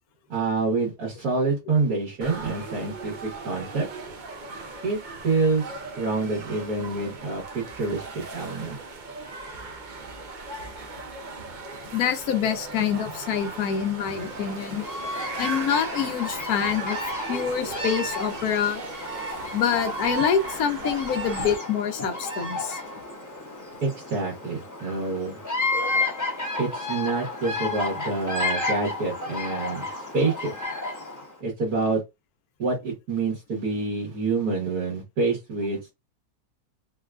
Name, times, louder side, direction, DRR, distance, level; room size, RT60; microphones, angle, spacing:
voice 1, 0.3-3.9 4.8-5.0 5.2-8.8 23.8-25.4 26.6-29.9 30.1-30.5 31.4-32.0 32.6-35.9, right 3 dB, 80° right, 1.7 m, -27 dB
sound 1, 2.2-21.6, right 3 dB, 65° right, 0.4 m, -38 dB
voice 2, 11.9-14.8 15.4-17.0 17.3-18.8 19.5-22.8, left 8 dB, 75° left, 1.2 m, -26 dB
Bird vocalization bird call bird song, 14.1-31.3, left 2 dB, 20° left, 0.5 m, -32 dB
3.8 x 2.3 x 2.3 m
omnidirectional pair, 1.6 m